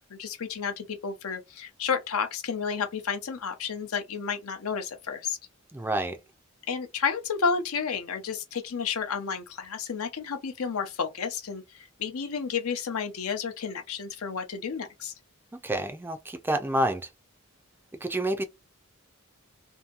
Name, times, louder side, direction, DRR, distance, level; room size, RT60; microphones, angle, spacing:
voice 1, 0.1-5.4 6.7-15.1, left 6 dB, 80° left, 0.6 m, -31 dB
voice 2, 5.7-6.2 15.6-17.1 18.0-18.4, right 1 dB, 10° right, 0.3 m, -28 dB
2.7 x 2.6 x 2.4 m
head